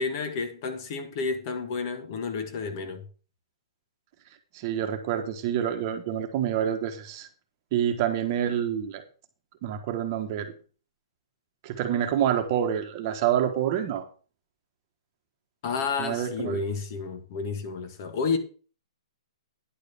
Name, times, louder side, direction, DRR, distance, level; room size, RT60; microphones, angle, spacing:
voice 1, 0.0-3.0 15.6-18.4, left 4 dB, 35° left, 1.6 m, -30 dB
voice 2, 4.5-7.3 7.7-9.0 9.6-10.5 11.6-14.0 16.0-16.6, right 10 dB, 30° right, 1.4 m, -27 dB
10.5 x 5.2 x 6.7 m
hypercardioid pair, 165°, 3 cm